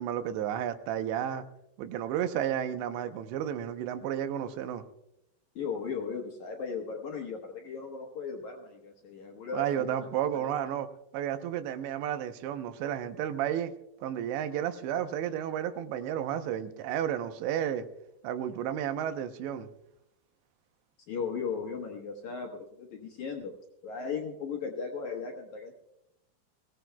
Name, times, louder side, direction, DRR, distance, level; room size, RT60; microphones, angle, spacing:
voice 1, 0.0-1.4 1.8-4.8 9.5-10.9 11.1-13.7 14.0-17.9 18.2-19.7, right 10 dB, 85° right, 3.1 m, -32 dB
voice 2, 5.6-10.0 10.3-10.5 21.1-23.5 23.8-25.7, left 5 dB, 65° left, 2.0 m, -37 dB
22.5 x 17.5 x 2.3 m
omnidirectional pair, 5.0 m